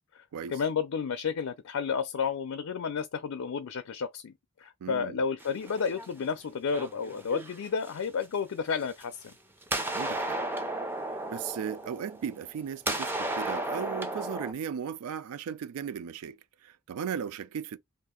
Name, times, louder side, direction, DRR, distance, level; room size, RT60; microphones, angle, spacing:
voice 1, 0.1-9.3, left 6 dB, 70° left, 0.4 m, -32 dB
voice 2, 4.8-5.2 9.9-10.4 11.1-17.8, right 7 dB, 75° right, 0.3 m, -37 dB
sound 1, 5.4-6.3 6.7-8.2 8.9-9.3 9.6-12.6 12.9-14.5, right 1 dB, 10° right, 0.4 m, -34 dB
2.7 x 2.4 x 3.6 m
head